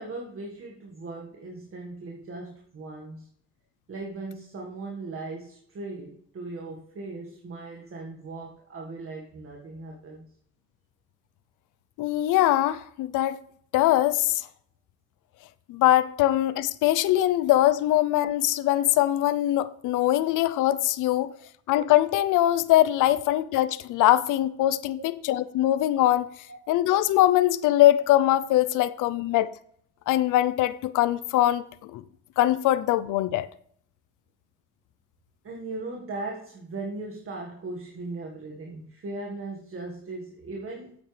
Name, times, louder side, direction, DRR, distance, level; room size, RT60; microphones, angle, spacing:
voice 1, 0.0-3.3 3.9-10.3 25.0-25.1 26.5-26.7 35.4-41.0, right 3 dB, 45° right, 1.7 m, -38 dB
voice 2, 12.0-13.4 13.7-14.5 15.7-21.3 21.7-26.3 26.7-29.5 30.1-32.0 32.4-33.5, left 14 dB, 90° left, 0.6 m, -22 dB
8.8 x 8.5 x 3.3 m
cardioid pair, 90°, 30 cm